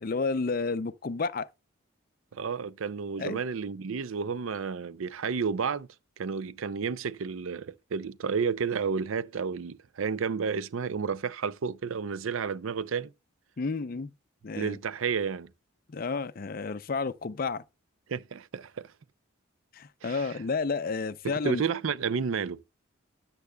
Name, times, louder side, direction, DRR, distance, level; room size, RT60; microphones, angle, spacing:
voice 1, 0.0-1.5 3.2-3.4 13.6-14.1 14.4-14.8 15.9-17.6 19.7-21.6, left 4 dB, 45° left, 0.5 m, -31 dB
voice 2, 2.3-5.9 6.2-13.1 14.6-15.5 18.1-18.9 20.0-20.4 21.2-22.6, right 5 dB, 85° right, 0.5 m, -31 dB
13.0 x 8.2 x 2.3 m
head